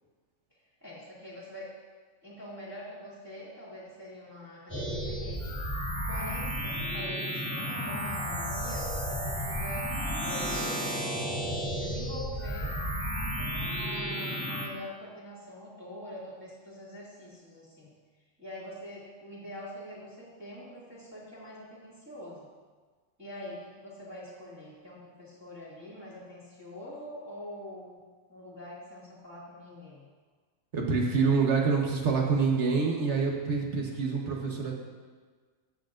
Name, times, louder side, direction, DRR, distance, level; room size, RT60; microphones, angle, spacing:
voice 1, 0.5-1.7 2.2-5.6 6.1-11.1 11.7-12.8 13.4-18.0 18.4-22.5 23.2-28.0 28.3-30.1, left 1 dB, 10° right, -10 dB, 2.3 m, -44 dB
sound 1, 4.7-14.7, equal, 15° left, 2.0 m, -33 dB
voice 2, 30.7-34.7, right 5 dB, 60° right, 0 dB, 1.5 m, -26 dB
16.0 x 6.4 x 2.6 m, 1.5 s
omnidirectional pair, 1.4 m